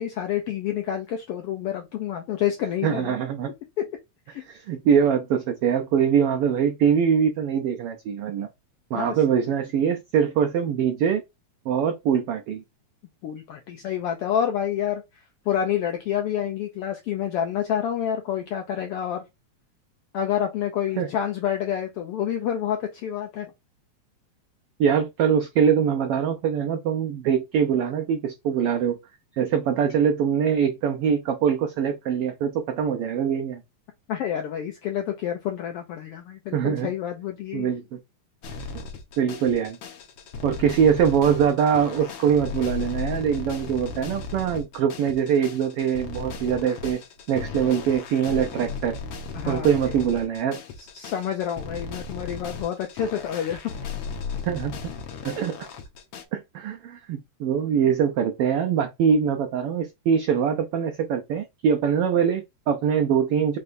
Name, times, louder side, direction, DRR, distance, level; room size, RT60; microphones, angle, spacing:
voice 1, 0.0-3.1 3.8-3.9 4.3-4.4 8.9-9.2 13.2-15.0 15.5-19.2 20.1-23.5 34.1-37.7 49.3-49.9 50.9-53.6, left 9 dB, 80° left, 1.3 m, -28 dB
voice 2, 2.8-3.5 4.5-8.5 8.9-11.2 11.7-12.6 21.0-21.1 24.8-29.0 29.4-33.6 36.5-36.9 37.5-38.0 39.2-39.8 40.4-47.0 47.3-49.0 49.5-50.6 54.5-54.9 55.2-55.7 56.3-63.6, right 7 dB, 85° right, 1.2 m, -23 dB
sound 1, 38.4-56.2, left 5 dB, 65° left, 1.6 m, -36 dB
5.6 x 3.3 x 2.6 m
omnidirectional pair, 3.3 m